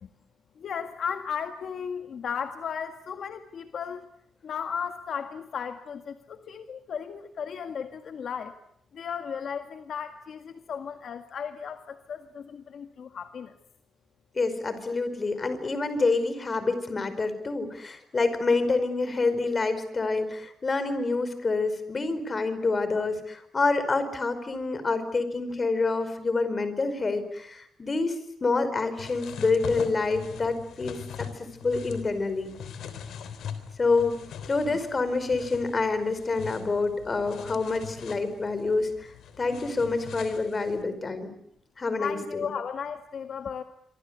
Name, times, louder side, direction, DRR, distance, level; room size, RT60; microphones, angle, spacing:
voice 1, 0.6-4.1 4.4-8.5 8.9-13.5 42.0-43.6, left 7 dB, 60° left, 7 dB, 1.8 m, -35 dB
voice 2, 14.4-32.5 33.8-34.2 34.5-39.1 39.4-41.3 41.8-42.5, left 3 dB, 30° left, 11 dB, 5.0 m, -27 dB
sound 1, 29.0-40.8, left 7 dB, 80° left, 3.7 m, -42 dB
26.5 x 25.5 x 8.2 m, 0.74 s
cardioid pair, 115°, 0 cm